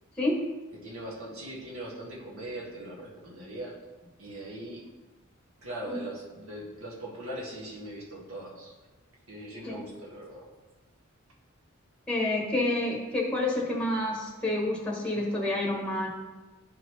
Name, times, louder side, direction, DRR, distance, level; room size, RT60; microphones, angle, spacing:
voice 1, 0.7-3.7 4.2-4.8 5.6-8.7 9.3-10.4, right 1 dB, 80° right, -3 dB, 1.7 m, -40 dB
voice 2, 12.1-16.1, left 1 dB, 5° left, -2 dB, 1.1 m, -28 dB
11.0 x 4.0 x 3.2 m, 1.2 s
head